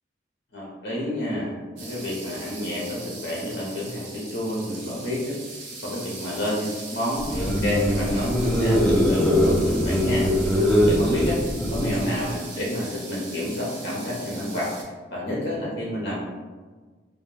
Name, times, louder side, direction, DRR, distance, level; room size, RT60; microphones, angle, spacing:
voice 1, 0.5-10.5 10.9-11.4 11.7-16.2, left 1 dB, 55° left, -5 dB, 0.8 m, -29 dB
sound 1, 1.8-14.8, right 3 dB, 85° right, 0.7 m, -40 dB
sound 2, 7.2-12.3, equal, ahead, 0.5 m, -22 dB
2.2 x 2.2 x 3.1 m, 1.4 s
head